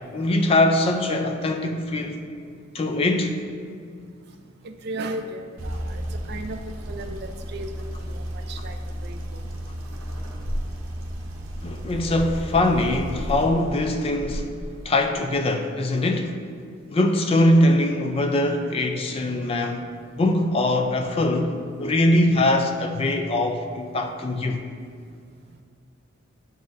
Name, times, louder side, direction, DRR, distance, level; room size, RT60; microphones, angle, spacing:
voice 1, 0.1-2.2 2.7-3.4 11.6-14.5 14.9-16.4 16.9-19.8 20.2-21.5 21.8-24.6, left 1 dB, 25° left, 5 dB, 0.3 m, -22 dB
voice 2, 4.6-7.7 8.0-8.8 9.0-9.2, right 2 dB, 50° right, 7 dB, 0.4 m, -35 dB
sound 1, 5.6-14.9, equal, 80° right, 0.8 m, -33 dB
10.0 x 4.1 x 2.5 m, 2.2 s
head